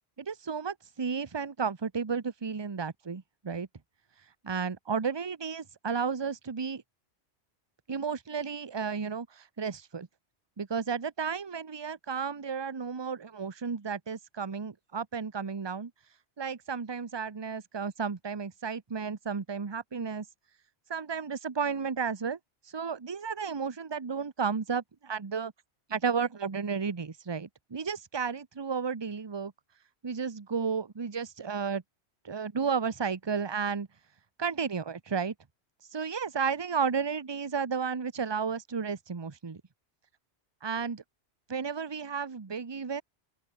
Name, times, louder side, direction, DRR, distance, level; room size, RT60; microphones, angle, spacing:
voice 1, 0.2-3.7 4.4-6.8 7.9-10.1 10.6-15.9 16.4-20.2 20.9-22.4 22.7-25.5 25.9-29.5 30.0-31.8 32.2-33.9 34.4-35.3 35.9-39.6 40.6-41.0 41.5-43.0, right 6 dB, 25° right, 0.9 m, -33 dB
open air
omnidirectional pair, 1.2 m